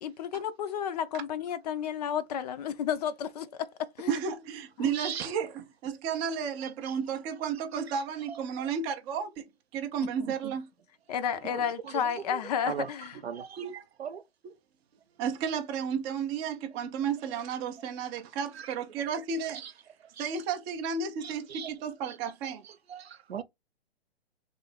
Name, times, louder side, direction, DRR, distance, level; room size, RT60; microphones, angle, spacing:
voice 1, 0.0-4.2 4.8-4.9 11.1-13.2, left 8 dB, 40° left, 0.5 m, -32 dB
voice 2, 4.1-9.5 9.7-10.7 11.5-11.6 11.9-12.0 13.6-13.7 14.4-14.5 15.2-19.6 20.2-22.6, right 6 dB, 15° right, 0.4 m, -33 dB
voice 3, 4.9-5.3 6.8-7.0 11.5-12.4 12.7-12.9 13.2-14.2 18.6-18.7 19.5-19.7 20.1-20.3 21.2-21.7 22.4-23.4, right 8 dB, 75° right, 0.7 m, -39 dB
3.1 x 2.7 x 4.0 m
figure-of-eight pair, 120°, 32 cm